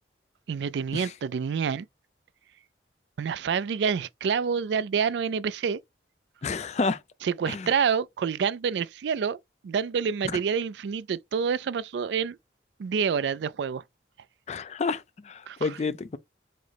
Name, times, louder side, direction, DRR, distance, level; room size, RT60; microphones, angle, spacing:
voice 1, 0.5-1.9 3.2-5.8 7.2-9.4 9.6-12.4 12.8-13.8 15.5-15.6, right 6 dB, 75° right, 0.3 m, -27 dB
voice 2, 6.4-7.0 7.5-7.7 10.2-10.4 14.5-16.2, left 4 dB, 35° left, 0.4 m, -30 dB
4.9 x 2.1 x 4.1 m
head